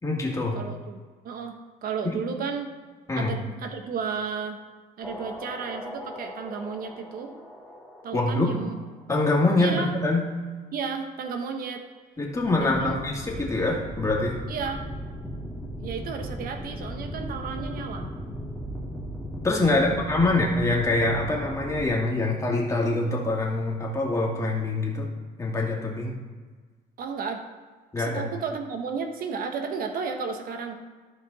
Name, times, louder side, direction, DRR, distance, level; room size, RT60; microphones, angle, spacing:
voice 1, 0.0-0.6 2.0-2.2 3.1-3.3 8.1-8.6 9.1-10.3 12.2-14.4 19.4-25.1 25.4-26.1 27.9-28.2, left 2 dB, 20° left, -2 dB, 2.2 m, -24 dB
voice 2, 0.5-1.0 1.2-2.7 3.2-4.6 5.0-7.3 8.0-8.7 9.6-9.9 10.7-11.8 12.8-13.0 14.5-14.9 15.8-18.1 19.7-20.0 27.0-27.4 28.0-30.8, right 5 dB, 60° right, 5 dB, 1.0 m, -33 dB
sound 1, 5.0-8.9 12.3-21.9, equal, 5° right, 2.8 m, -37 dB
14.0 x 4.7 x 4.1 m, 1.4 s
cardioid pair, 110°, 17 cm